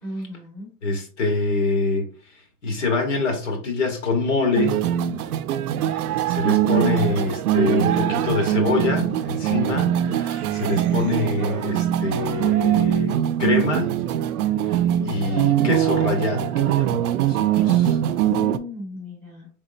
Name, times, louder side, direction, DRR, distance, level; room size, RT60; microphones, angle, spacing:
voice 1, 0.0-0.7 18.1-19.5, left 1 dB, ahead, 1.0 m, -35 dB
voice 2, 0.8-2.1 2.6-4.8 6.3-14.0 14.7-14.8 15.0-18.0, left 3 dB, 55° left, 1.3 m, -25 dB
sound 1, 4.6-18.6, right 11 dB, 80° right, 0.6 m, -22 dB
4.3 x 3.6 x 2.5 m
supercardioid pair, 180°, 44 cm